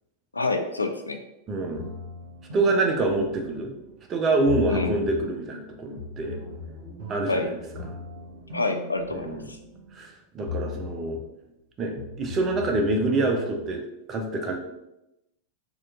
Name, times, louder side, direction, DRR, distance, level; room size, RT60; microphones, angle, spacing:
voice 1, 0.3-1.2 4.7-4.9 7.3-7.5 8.5-9.6, left 3 dB, 80° left, 5 dB, 0.3 m, -27 dB
voice 2, 1.5-1.9 2.5-3.7 4.1-6.4 7.1-7.4 7.8-7.9 9.1-9.5 9.9-11.2 11.8-13.8 14.1-14.6, right 2 dB, 30° right, 3 dB, 0.6 m, -26 dB
sound 1, 1.7-4.0 4.4-5.3 6.0-10.1 10.4-11.3 12.0-13.7, left 3 dB, 55° right, 1.2 m, -38 dB
4.3 x 2.5 x 2.5 m, 0.90 s
figure-of-eight pair, 90°, 0 cm